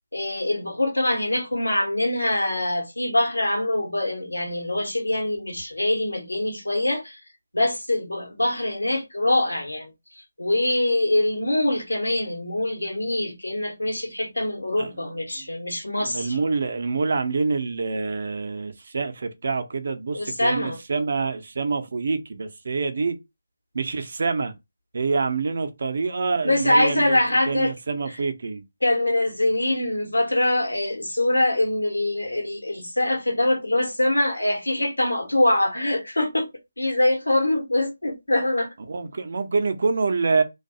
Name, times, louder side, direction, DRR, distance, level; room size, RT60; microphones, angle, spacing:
voice 1, 0.1-7.2 7.5-9.9 10.4-16.4 20.1-20.8 26.4-27.7 28.8-36.5 36.8-38.7, left 1 dB, 85° left, 0.9 m, -24 dB
voice 2, 14.8-15.5 16.0-23.2 23.7-24.5 24.9-27.2 27.5-28.6 38.9-40.4, right 4 dB, 50° right, 0.5 m, -26 dB
2.6 x 2.2 x 2.5 m
figure-of-eight pair, 155°, 0 cm